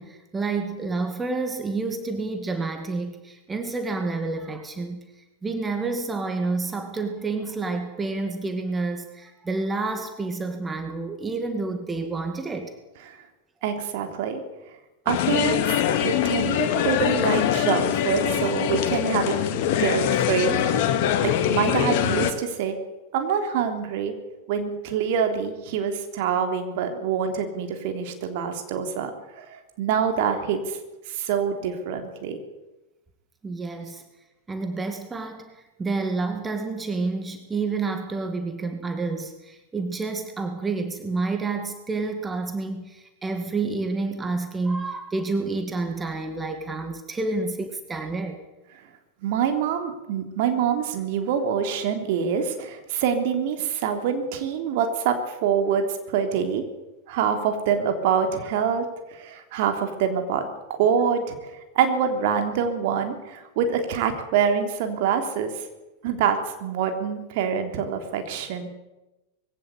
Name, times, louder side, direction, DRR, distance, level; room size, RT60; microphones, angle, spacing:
voice 1, 0.0-5.1 5.4-12.7 33.4-34.0 34.5-48.4, right 3 dB, 15° right, 6 dB, 2.2 m, -29 dB
voice 2, 13.6-14.4 15.0-15.7 16.0-19.3 19.8-20.6 21.2-22.8 23.1-24.1 24.5-29.1 29.4-30.8 31.1-32.4 49.2-56.6 57.1-58.8 59.1-60.4 60.8-61.4 61.7-65.5 66.0-68.7, right 7 dB, 50° right, 5 dB, 3.4 m, -25 dB
sound 1, 15.1-22.3, left 10 dB, 50° left, 2.1 m, -23 dB
21.5 x 16.5 x 8.2 m, 1.0 s
figure-of-eight pair, 90°, 0 cm